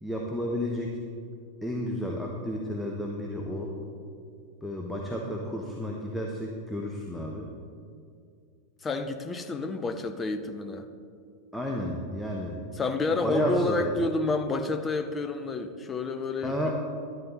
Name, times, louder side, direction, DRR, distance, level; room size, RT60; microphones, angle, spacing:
voice 1, 0.0-1.0 1.6-3.7 4.6-7.5 11.5-12.6 13.2-13.9 16.4-16.7, equal, 5° left, -1 dB, 1.1 m, -31 dB
voice 2, 8.8-10.9 12.7-16.7, left 3 dB, 20° left, 8 dB, 0.8 m, -29 dB
12.0 x 11.0 x 4.1 m, 2.3 s
figure-of-eight pair, 90°, 0 cm